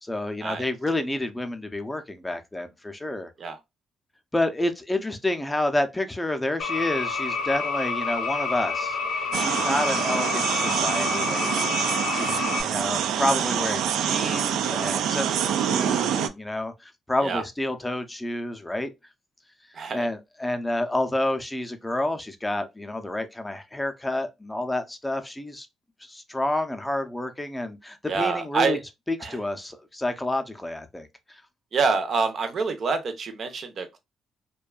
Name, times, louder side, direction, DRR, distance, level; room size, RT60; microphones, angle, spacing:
voice 1, 0.0-3.3 4.3-18.9 19.9-25.7 26.0-28.8 29.1-31.4, left 1 dB, 10° left, 0.5 m, -29 dB
sound 1, 6.6-12.6, left 4 dB, 90° left, 0.5 m, -28 dB
sound 2, 9.3-16.3, right 9 dB, 85° right, 0.3 m, -26 dB
voice 2, 19.7-20.1 28.1-28.8 29.2-29.4 31.7-34.0, right 4 dB, 55° right, 0.6 m, -26 dB
2.6 x 2.2 x 2.3 m
cardioid pair, 90°, 0 cm